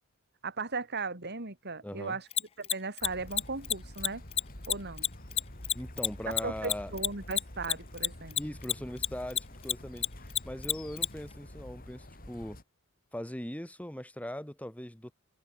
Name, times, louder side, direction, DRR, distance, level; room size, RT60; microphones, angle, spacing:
voice 1, 0.4-2.3 2.6-4.2 4.7-5.1 6.3-8.4, right 4 dB, 50° right, 3.4 m, -37 dB
voice 2, 1.8-2.2 5.7-6.9 8.4-10.1 10.4-12.6 13.1-15.1, equal, 5° left, 2.5 m, -40 dB
Mechanisms, 2.3-9.1 9.3-11.1, left 10 dB, 25° left, 0.5 m, -28 dB
sound 1, 3.0-12.6, left 1 dB, 40° left, 5.1 m, -47 dB
head